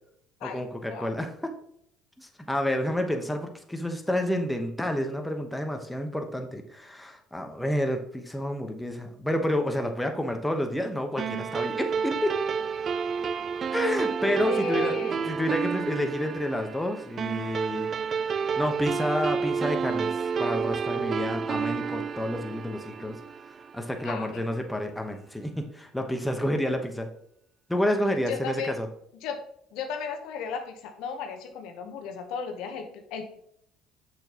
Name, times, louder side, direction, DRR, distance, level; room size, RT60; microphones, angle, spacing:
voice 1, 0.4-1.5 2.2-12.3 13.7-17.9 18.6-20.1 20.4-23.2 23.7-27.1 27.7-28.9, left 1 dB, 5° left, 4 dB, 1.0 m, -29 dB
sound 1, 11.2-23.9, right 6 dB, 45° right, 0.3 m, -30 dB
voice 2, 14.4-15.2 24.0-24.4 28.3-28.7 29.2-29.4 29.7-33.3, left 5 dB, 75° left, 5 dB, 0.9 m, -35 dB
6.5 x 6.2 x 2.9 m, 0.70 s
supercardioid pair, 75°, 0 cm